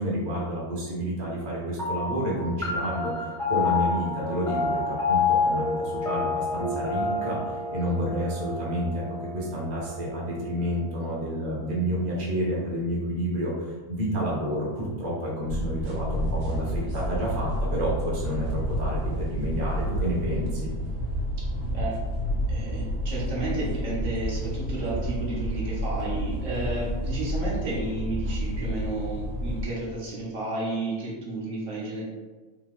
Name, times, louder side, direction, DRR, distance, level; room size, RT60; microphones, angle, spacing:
voice 1, 0.0-20.7, equal, 35° right, -5 dB, 0.9 m, -30 dB
sound 1, 1.8-10.6, left 4 dB, 5° left, 0.6 m, -29 dB
sound 2, 15.5-29.7, equal, 85° right, 1.4 m, -30 dB
voice 2, 22.5-32.0, right 2 dB, 60° right, -6 dB, 1.3 m, -32 dB
3.4 x 2.8 x 3.7 m, 1.3 s
omnidirectional pair, 1.6 m